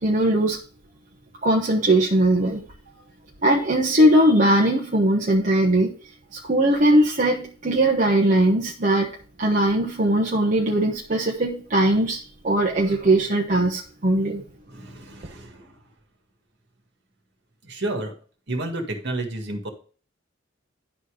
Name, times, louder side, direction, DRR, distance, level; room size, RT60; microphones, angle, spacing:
voice 1, 0.0-0.6 1.4-2.6 3.4-6.0 6.3-9.1 9.4-14.4, right 1 dB, 40° right, -2 dB, 1.1 m, -20 dB
voice 2, 14.7-15.7 17.6-18.1 18.5-19.7, right 2 dB, 60° right, 3 dB, 1.9 m, -31 dB
11.0 x 4.2 x 4.9 m, 0.40 s
head